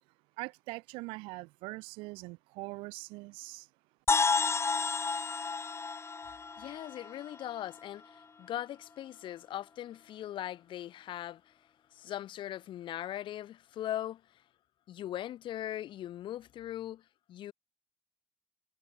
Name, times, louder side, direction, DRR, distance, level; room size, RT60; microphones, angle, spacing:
voice 1, 0.4-3.7, right 25 dB, 85° right, 1.6 m, -42 dB
sound 1, 4.1-7.8, left 4 dB, 30° left, 1.2 m, -31 dB
voice 2, 6.6-11.5 11.9-14.2 14.9-17.0 17.3-17.5, left 12 dB, 70° left, 4.1 m, -40 dB
supercardioid pair, 60°, 9 cm